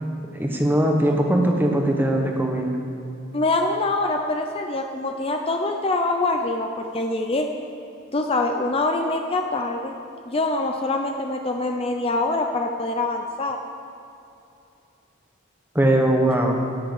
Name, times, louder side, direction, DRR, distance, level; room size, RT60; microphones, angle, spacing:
voice 1, 0.3-2.8 15.7-16.6, right 1 dB, 10° right, 2 dB, 1.3 m, -20 dB
voice 2, 3.3-7.5 8.1-9.9 10.3-13.6, left 2 dB, 30° left, 3 dB, 0.6 m, -24 dB
9.9 x 9.8 x 8.1 m, 2.7 s
head